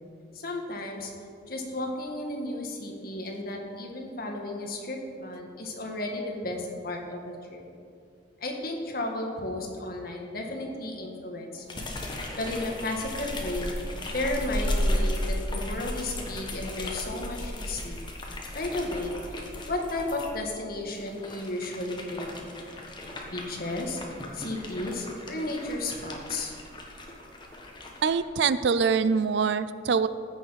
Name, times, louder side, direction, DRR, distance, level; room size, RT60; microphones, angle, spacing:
voice 1, 0.4-1.1 1.5-7.2 7.5-7.6 8.4-11.8 12.4-13.7 14.1-18.0 18.5-19.2 19.7-22.6 23.3-24.0 24.3-26.5, left 2 dB, 55° left, 1 dB, 1.8 m, -33 dB
sound 1, 11.7-20.3 20.9-28.2, left 1 dB, 25° left, 1.4 m, -34 dB
voice 2, 28.0-30.1, right 5 dB, 70° right, 14 dB, 0.4 m, -24 dB
15.5 x 6.9 x 5.8 m, 2.3 s
head